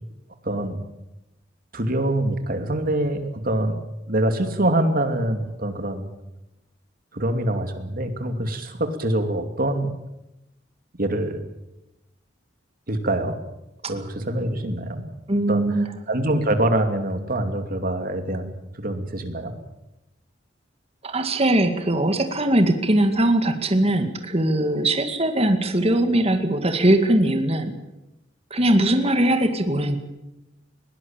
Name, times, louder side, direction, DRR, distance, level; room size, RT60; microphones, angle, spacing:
voice 1, 0.4-0.8 1.7-3.8 4.1-6.0 7.1-9.9 11.0-11.4 12.9-13.4 13.9-15.0 15.5-19.5, right 1 dB, 50° right, 7 dB, 2.7 m, -25 dB
voice 2, 15.3-15.9 21.0-27.8 28.5-30.0, right 1 dB, 30° right, 7 dB, 2.1 m, -20 dB
21.0 x 18.0 x 8.9 m, 0.93 s
head